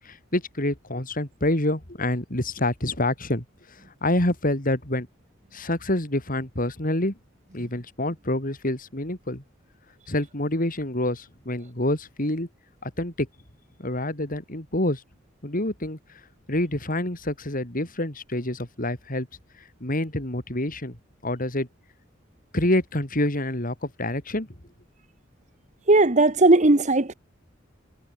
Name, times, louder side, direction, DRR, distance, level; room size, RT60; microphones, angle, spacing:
voice 1, 0.0-3.4 4.0-5.1 5.5-7.1 7.5-9.4 10.1-12.5 12.8-13.3 13.8-15.0 15.4-16.0 16.5-19.3 19.8-21.0 21.2-21.7 22.5-24.5, left 1 dB, 45° left, 4.6 m, -27 dB
voice 2, 25.9-27.1, right 2 dB, 35° right, 1.4 m, -17 dB
head